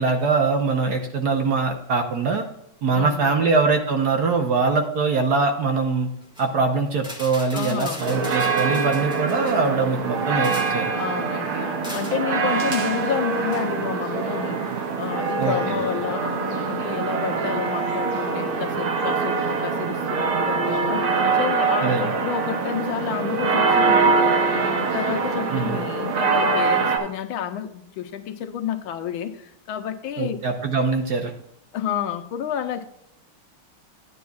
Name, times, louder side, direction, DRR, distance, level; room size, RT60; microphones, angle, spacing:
voice 1, 0.0-2.4 2.8-6.1 6.4-10.9 15.4-15.8 21.8-22.1 25.5-25.8 30.2-31.3, right 4 dB, 55° right, 4 dB, 1.3 m, -22 dB
voice 2, 2.9-3.5 7.5-8.1 10.9-24.2 24.5-30.4 31.7-32.8, left 9 dB, 75° left, 9 dB, 1.5 m, -30 dB
sound 1, 6.2-6.5 7.0-9.7 10.2-10.9 11.8-12.2 13.5-13.7, left 1 dB, ahead, 1.5 m, -39 dB
sound 2, 8.0-27.0, right 4 dB, 80° right, 2.2 m, -24 dB
12.5 x 9.3 x 2.3 m, 0.78 s
omnidirectional pair, 2.3 m